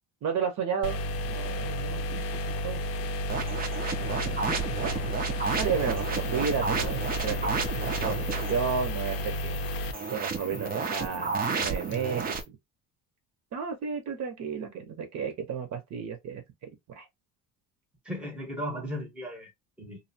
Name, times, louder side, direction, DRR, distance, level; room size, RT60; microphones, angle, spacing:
voice 1, 0.2-1.0 1.2-2.2 2.6-2.8 4.1-4.3 4.8-5.0 5.5-9.6 10.1-12.6 13.5-16.4 16.9-17.1, right 6 dB, 50° right, 0.8 m, -32 dB
sound 1, 0.8-9.9, equal, 75° left, 0.6 m, -32 dB
sound 2, 3.3-8.5 9.9-12.4, right 5 dB, 25° right, 0.5 m, -32 dB
voice 2, 4.3-4.7 18.0-19.5 19.8-20.0, equal, 5° right, 0.8 m, -36 dB
sound 3, 5.4-12.4, left 6 dB, 35° left, 0.6 m, -47 dB
2.7 x 2.0 x 2.6 m
cardioid pair, 120°, 35 cm